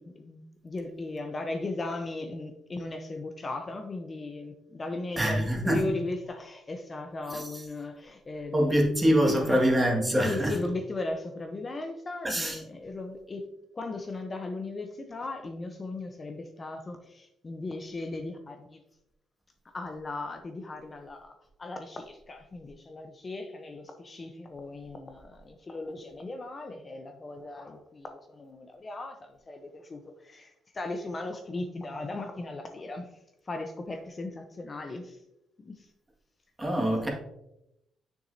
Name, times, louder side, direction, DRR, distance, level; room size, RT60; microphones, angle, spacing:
voice 1, 0.0-8.9 9.3-9.7 10.2-13.5 13.7-18.8 19.7-21.3 21.6-33.1 33.5-35.2 35.6-35.9 36.9-37.1, left 2 dB, 30° left, 0.7 m, -37 dB
voice 2, 5.2-5.8 7.3-7.6 8.5-10.5 12.2-12.6 36.6-37.1, equal, 15° right, 1.8 m, -25 dB
7.0 x 6.1 x 2.7 m
cardioid pair, 90°, 0 cm